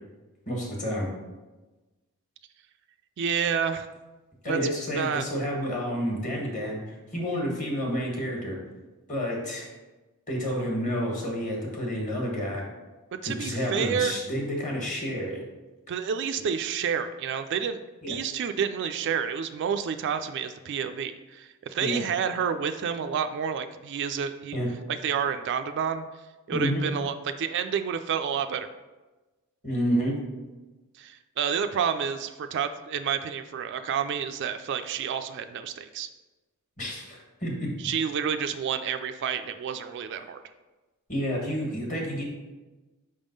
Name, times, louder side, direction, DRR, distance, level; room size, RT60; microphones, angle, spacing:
voice 1, 0.5-1.1 4.4-8.6 9.1-9.7 10.3-12.6 13.2-15.4 18.0-18.2 21.8-22.0 24.5-24.7 26.5-26.8 29.6-30.2 36.8-37.7 41.1-42.2, equal, 35° left, -1 dB, 1.4 m, -29 dB
voice 2, 3.2-3.9 4.5-4.6 4.9-5.2 13.2-14.2 15.9-17.8 18.1-24.6 24.9-26.0 26.5-28.7 31.0-36.1 37.8-40.4, right 7 dB, 50° right, 8 dB, 0.3 m, -29 dB
5.4 x 3.6 x 5.3 m, 1.2 s
head